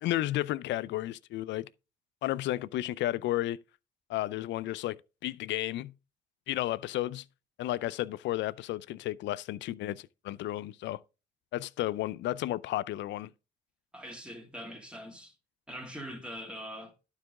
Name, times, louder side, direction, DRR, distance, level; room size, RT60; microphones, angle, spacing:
voice 1, 0.0-1.7 2.2-3.6 4.1-5.9 6.5-7.2 7.6-11.0 11.5-13.3, left 15 dB, 70° left, 0.5 m, -32 dB
voice 2, 13.9-15.3 15.7-16.9, equal, 5° right, 2.4 m, -42 dB
11.5 x 4.8 x 3.6 m
supercardioid pair, 65°, 19 cm